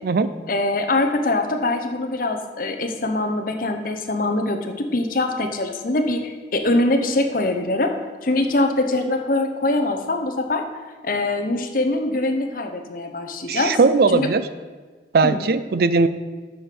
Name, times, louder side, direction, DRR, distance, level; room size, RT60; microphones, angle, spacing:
voice 1, 0.5-7.9 8.2-10.6 11.0-13.8 14.1-14.3 15.2-15.4, left 2 dB, 50° left, 5 dB, 0.8 m, -23 dB
voice 2, 13.5-14.5 15.1-16.1, right 4 dB, 55° right, 13 dB, 0.4 m, -18 dB
7.8 x 5.1 x 6.0 m, 1.4 s
head